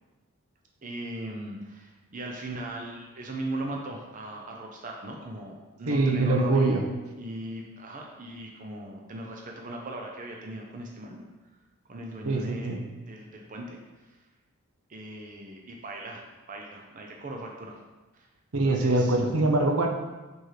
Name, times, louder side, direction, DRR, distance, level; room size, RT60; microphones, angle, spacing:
voice 1, 0.8-6.7 7.2-11.2 11.9-13.8 14.1-14.2 14.9-17.8 18.1-18.3 18.6-19.2, right 1 dB, 35° right, 1 dB, 0.6 m, -39 dB
voice 2, 5.9-6.8 12.2-12.8 18.5-19.9, right 2 dB, 70° right, 3 dB, 0.7 m, -23 dB
6.9 x 4.4 x 3.2 m, 1.2 s
head